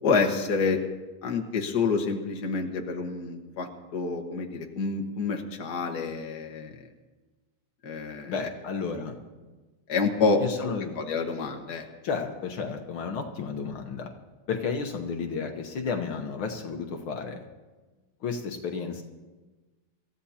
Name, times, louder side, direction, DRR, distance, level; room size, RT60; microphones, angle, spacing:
voice 1, 0.0-0.8 1.2-6.8 7.8-8.5 9.9-11.9, left 4 dB, 50° left, 2 dB, 1.8 m, -28 dB
voice 2, 8.3-9.2 10.4-11.0 12.0-14.1 14.5-17.4 18.2-19.0, left 5 dB, 70° left, 3 dB, 1.9 m, -32 dB
27.0 x 14.5 x 2.9 m, 1.2 s
omnidirectional pair, 2.4 m